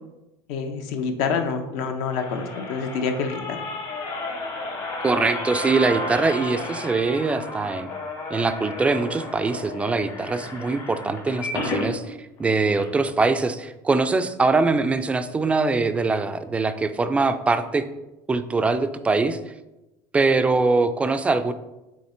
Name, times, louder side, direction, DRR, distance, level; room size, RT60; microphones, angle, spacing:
voice 1, 0.5-3.6, left 5 dB, 70° left, 6 dB, 0.8 m, -27 dB
sound 1, 1.7-11.9 12.4-12.5 12.7-12.8, left 2 dB, 55° left, 1.8 m, -32 dB
voice 2, 5.0-7.9 8.3-17.8 18.3-19.4 20.1-21.5, right 3 dB, 10° right, 10 dB, 0.3 m, -22 dB
7.4 x 3.2 x 4.3 m, 0.99 s
cardioid pair, 150°, 11 cm